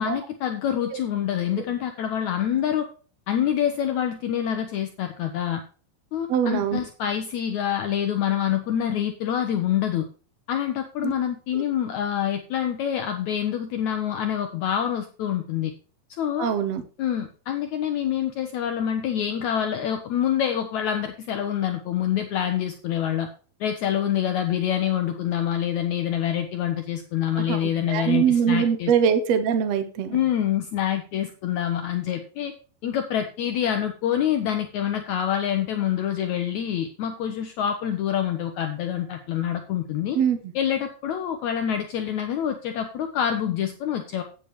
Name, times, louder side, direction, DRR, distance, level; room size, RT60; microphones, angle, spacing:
voice 1, 0.0-2.9 3.3-5.6 6.1-10.1 10.5-15.7 16.2-16.5 17.0-23.3 23.6-28.9 30.1-32.5 32.8-40.2 40.5-44.2, left 10 dB, 85° left, 6 dB, 1.6 m, -26 dB
voice 2, 6.3-6.8 11.0-11.1 16.4-16.8 27.3-27.6 27.9-30.2 40.1-40.4, right 8 dB, 75° right, 9 dB, 1.5 m, -22 dB
10.0 x 8.9 x 3.0 m, 0.37 s
omnidirectional pair, 4.5 m